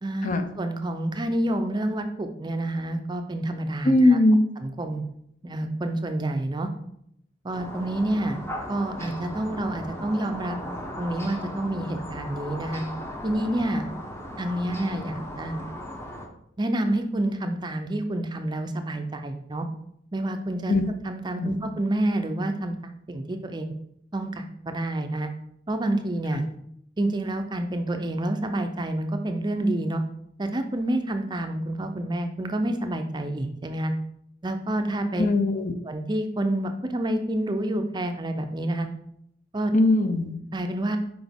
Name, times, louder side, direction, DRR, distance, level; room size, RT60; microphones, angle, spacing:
voice 1, 0.0-4.2 4.6-5.0 5.4-6.7 7.4-8.4 8.7-10.6 11.0-12.8 13.2-13.9 14.4-15.5 16.6-19.7 20.1-23.7 24.1-25.3 25.7-26.4 27.0-30.0 30.4-33.9 34.4-35.3 35.9-38.9 39.5-39.7 40.5-41.0, right 1 dB, 25° right, 6 dB, 0.5 m, -28 dB
voice 2, 3.8-4.4 20.7-20.8 21.4-21.5 26.3-26.4 35.2-35.8 39.7-40.4, left 2 dB, 45° left, 8 dB, 0.6 m, -20 dB
sound 1, 7.5-16.3, equal, 15° left, 0.7 m, -37 dB
6.0 x 4.9 x 3.5 m, 0.73 s
head